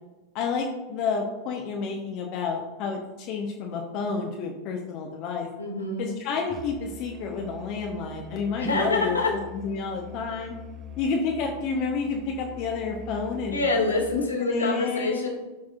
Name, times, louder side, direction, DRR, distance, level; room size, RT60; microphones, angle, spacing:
voice 1, 0.3-5.5 6.0-9.2 9.5-10.5 11.0-13.7 14.1-15.3, left 5 dB, 40° left, 1 dB, 0.9 m, -30 dB
voice 2, 5.6-6.1 8.6-9.3 13.5-15.3, left 3 dB, 80° left, -2 dB, 2.3 m, -26 dB
Musical instrument, 6.5-14.3, right 1 dB, 25° right, 0.7 m, -43 dB
12.5 x 6.0 x 2.5 m, 1.1 s
figure-of-eight pair, 90°, 0 cm